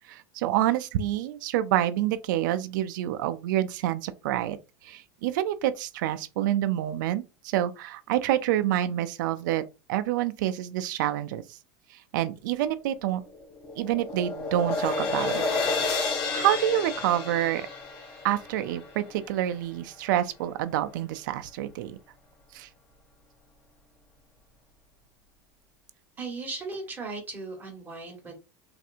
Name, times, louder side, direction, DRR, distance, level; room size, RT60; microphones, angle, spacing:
voice 1, 0.1-9.6 9.9-11.4 11.9-13.2 13.8-15.4 16.3-17.7 18.2-22.0 22.5-22.7, right 12 dB, 80° right, 0.4 m, -27 dB
sound 1, 13.1-19.5, left 3 dB, 60° left, 1.2 m, -31 dB
voice 2, 26.2-28.4, right 3 dB, 20° right, 1.4 m, -37 dB
3.2 x 2.7 x 2.5 m
supercardioid pair, 140°, 10 cm